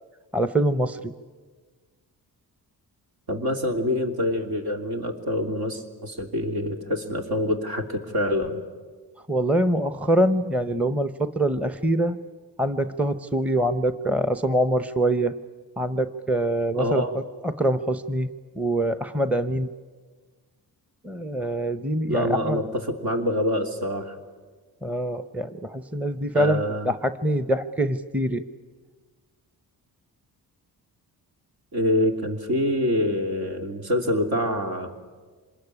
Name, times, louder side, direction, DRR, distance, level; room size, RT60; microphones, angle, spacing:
voice 1, 0.3-1.1 9.3-12.2 12.6-15.3 15.8-18.3 18.6-19.7 21.0-22.6 24.8-28.4, right 1 dB, 5° right, 12 dB, 0.8 m, -24 dB
voice 2, 3.3-8.6 16.8-17.1 22.1-24.1 26.3-26.9 31.7-34.9, equal, 70° right, 4 dB, 3.1 m, -26 dB
26.0 x 20.5 x 9.9 m, 1.4 s
cardioid pair, 105°, 39 cm